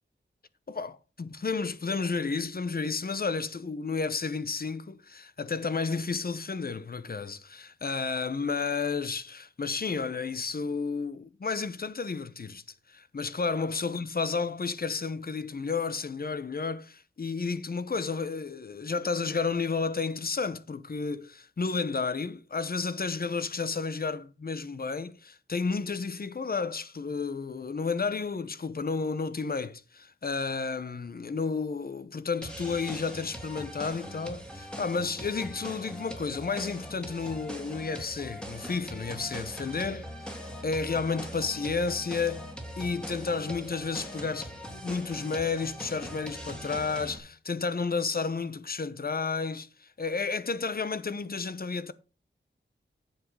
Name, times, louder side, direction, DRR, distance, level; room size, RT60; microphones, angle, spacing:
voice 1, 0.7-12.6 12.9-40.4 40.6-42.4 42.8-51.9, left 4 dB, 50° left, 0.9 m, -32 dB
sound 1, 32.4-47.2, equal, 5° left, 2.7 m, -41 dB
9.3 x 7.5 x 4.8 m
wide cardioid pair, 75°, 19 cm